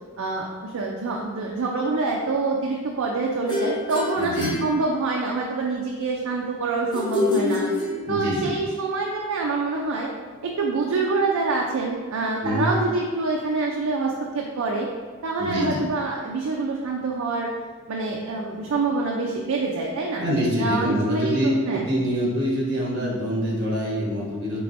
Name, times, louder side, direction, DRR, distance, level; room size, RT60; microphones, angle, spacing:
voice 1, 0.2-7.6 8.1-10.1 10.4-14.9 15.2-17.5 17.9-20.2 20.6-21.9, right 3 dB, 80° right, -1 dB, 0.4 m, -26 dB
sound 1, 3.5-5.4 6.9-8.5, left 2 dB, 20° left, 0.7 m, -27 dB
voice 2, 4.2-4.6 8.1-8.5 12.4-12.7 15.4-15.9 20.2-24.6, equal, 50° right, -5 dB, 1.2 m, -25 dB
4.6 x 3.3 x 2.6 m, 1.5 s
head